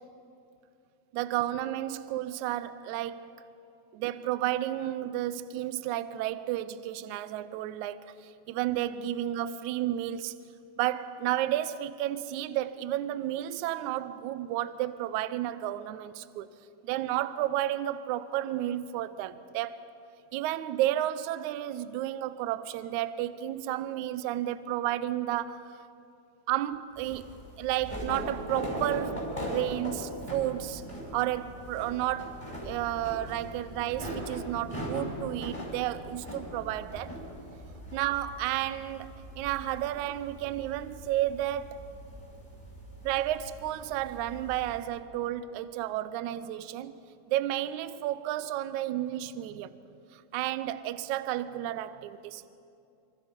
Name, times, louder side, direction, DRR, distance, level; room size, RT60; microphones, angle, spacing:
voice 1, 1.1-3.3 3.9-10.4 10.8-16.5 16.8-19.8 20.3-25.7 26.5-30.8 31.1-37.1 37.9-41.8 43.0-46.9 47.3-49.8 50.1-52.5, right 13 dB, 80° right, 1.7 m, -32 dB
sound 1, 27.0-44.8, equal, 10° left, 5.3 m, -40 dB
26.0 x 26.0 x 5.2 m
omnidirectional pair, 4.2 m